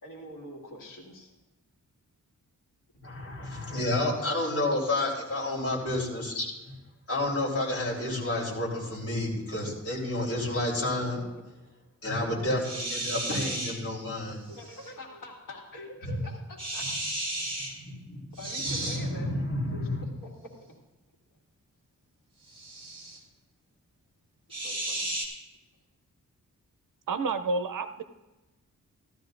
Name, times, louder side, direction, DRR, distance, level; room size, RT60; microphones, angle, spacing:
voice 1, 0.0-1.3 4.4-4.5 11.3-11.4 14.4-16.9 18.4-19.4 19.7-20.8 24.5-25.1, left 1 dB, 75° left, -2 dB, 2.3 m, -45 dB
voice 2, 3.0-6.7 7.1-11.2 12.0-14.4 16.0-16.2 17.8-18.2 18.6-20.0, left 1 dB, 45° left, -5 dB, 3.8 m, -30 dB
sound 1, 12.6-13.7 14.5-14.9 16.6-17.7 18.4-19.0 22.5-23.2 24.5-25.2, right 1 dB, 15° right, 2.4 m, -33 dB
voice 3, 27.1-28.0, right 3 dB, 75° right, 9 dB, 0.7 m, -29 dB
16.0 x 12.5 x 2.6 m, 1.1 s
wide cardioid pair, 160°, 32 cm